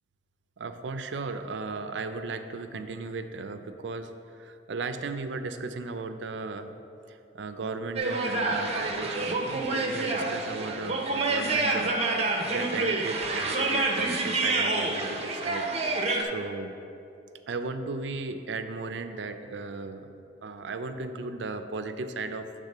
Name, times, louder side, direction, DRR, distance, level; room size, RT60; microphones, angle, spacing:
voice 1, 0.6-6.7 7.1-12.0 12.5-16.7 17.5-22.5, right 3 dB, 75° right, 9 dB, 0.5 m, -36 dB
sound 1, 8.0-16.2, right 2 dB, 35° right, 0.6 m, -28 dB
8.2 x 3.6 x 6.5 m, 2.7 s
head